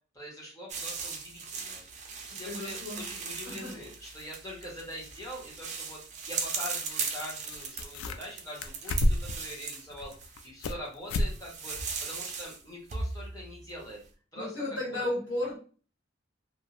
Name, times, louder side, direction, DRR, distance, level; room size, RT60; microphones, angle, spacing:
voice 1, 0.1-1.8 2.2-10.1 10.4-14.0 14.3-15.1, equal, 15° left, -3 dB, 1.0 m, -43 dB
sound 1, 0.7-10.5 11.2-12.6 12.9-13.8, right 5 dB, 35° right, 0.4 m, -38 dB
voice 2, 2.4-3.0 3.4-3.7 14.3-15.6, left 1 dB, 60° left, -9 dB, 1.3 m, -33 dB
sound 2, 7.2-7.3 7.5-8.3 8.6-9.4 9.9-10.8 11.1-11.3 11.7-11.8 12.3-12.4, left 1 dB, 85° left, 0.3 m, -29 dB
2.6 x 2.0 x 2.9 m, 0.38 s
head